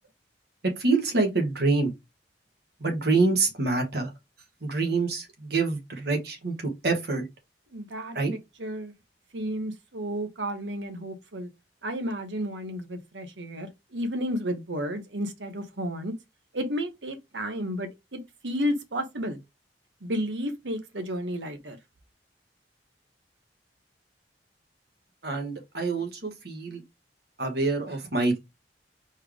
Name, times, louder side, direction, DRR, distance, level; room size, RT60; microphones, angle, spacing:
voice 1, 0.8-1.9 2.8-4.1 4.6-7.3 8.1-8.3 25.2-26.8 27.4-28.4, right 3 dB, 65° right, 1.5 m, -26 dB
voice 2, 7.7-8.2 8.6-8.9 9.3-11.5 11.8-16.1 16.5-19.4 20.0-21.8, equal, 90° right, 1.2 m, -32 dB
4.5 x 3.2 x 3.6 m
head